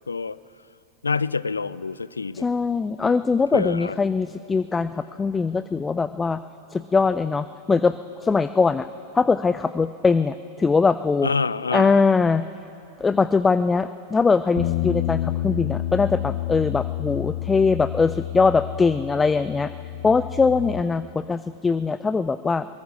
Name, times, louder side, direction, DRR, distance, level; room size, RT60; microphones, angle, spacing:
voice 1, 0.1-0.4 1.0-2.5 3.5-4.0 11.2-12.0, left 4 dB, 75° left, 19 dB, 0.4 m, -26 dB
voice 2, 2.3-6.4 6.7-8.9 9.1-11.3 11.7-12.4 13.0-19.7 20.0-22.7, left 4 dB, 15° left, 14 dB, 0.4 m, -21 dB
Bass guitar, 14.6-20.8, left 14 dB, 55° left, 1.0 m, -29 dB
22.0 x 19.0 x 6.1 m, 2.8 s
figure-of-eight pair, 90°, 0 cm